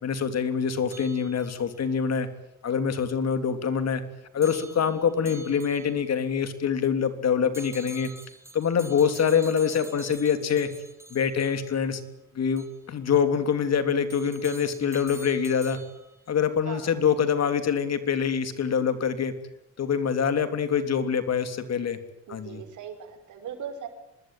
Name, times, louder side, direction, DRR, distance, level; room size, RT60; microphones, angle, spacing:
voice 1, 0.0-2.3 2.6-4.0 4.3-8.1 8.5-10.7 11.1-12.0 12.3-15.8 16.3-19.3 19.8-22.0 22.3-22.6, left 7 dB, 60° left, 9 dB, 3.4 m, -25 dB
sound 1, 0.9-1.8 4.4-6.2 7.5-11.9 12.6-12.8 14.1-16.2, right 1 dB, 10° right, 2.6 m, -46 dB
voice 2, 22.3-23.9, right 7 dB, 75° right, 7 dB, 5.5 m, -39 dB
25.5 x 21.0 x 9.2 m, 0.82 s
cardioid pair, 90°, 30 cm